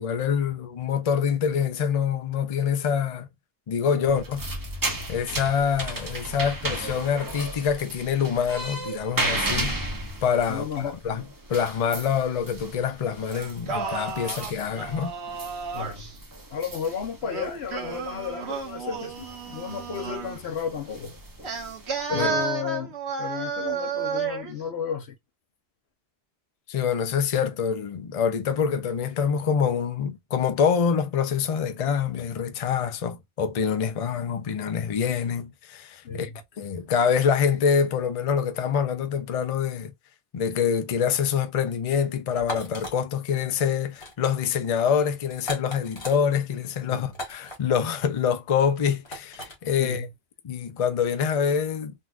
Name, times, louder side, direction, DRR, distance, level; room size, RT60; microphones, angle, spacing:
voice 1, 0.0-3.3 3.7-4.4 5.1-9.7 10.2-11.2 11.5-15.1 22.1-22.3 26.7-36.3 36.6-39.9 40.3-50.1 50.4-51.9, left 7 dB, 45° left, 0.5 m, -25 dB
sound 1, 4.1-22.2, right 2 dB, 25° right, 0.6 m, -35 dB
voice 2, 10.5-11.0 15.7-16.1 16.5-21.2 22.1-25.1 36.0-36.4 46.9-47.1 49.8-50.1, left 6 dB, 75° left, 1.0 m, -33 dB
Singing, 13.3-16.1 17.2-20.4 21.4-24.5, right 5 dB, 75° right, 1.2 m, -32 dB
sound 2, 42.4-42.9 43.9-44.1 44.4-44.6 45.3-46.2 47.1-47.6 49.0-49.6, left 1 dB, 25° left, 1.3 m, -36 dB
3.9 x 2.4 x 2.4 m
omnidirectional pair, 1.1 m